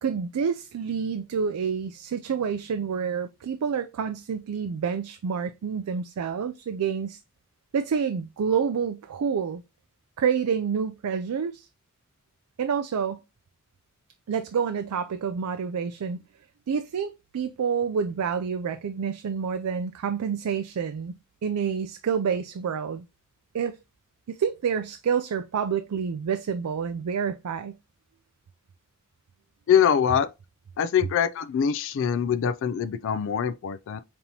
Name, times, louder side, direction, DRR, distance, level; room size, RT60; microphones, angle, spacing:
voice 1, 0.0-7.2 7.7-9.6 10.2-11.7 12.6-13.2 14.3-16.2 16.7-21.1 21.4-23.0 23.5-23.8 24.4-27.8, right 6 dB, 85° right, 0.4 m, -28 dB
voice 2, 29.7-30.3 30.8-34.0, left 8 dB, 60° left, 0.3 m, -23 dB
5.3 x 2.9 x 2.8 m
head